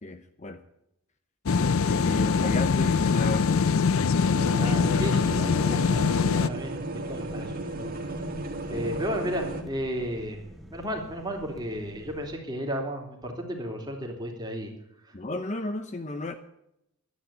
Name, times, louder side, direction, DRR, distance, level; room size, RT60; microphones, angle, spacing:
voice 1, 0.0-0.6 1.5-3.9 8.7-8.9 15.1-16.3, left 2 dB, 30° left, 9 dB, 0.8 m, -34 dB
sound 1, 1.5-6.5, left 5 dB, 65° left, 0.5 m, -23 dB
sound 2, 4.3-9.6, right 2 dB, 40° right, 1.9 m, -34 dB
voice 2, 4.6-7.9 8.7-10.4 10.7-14.7 15.1-15.2, equal, 20° right, 1 dB, 2.8 m, -34 dB
sound 3, 7.1-12.4, equal, ahead, 1.1 m, -48 dB
12.0 x 9.7 x 8.6 m, 0.82 s
head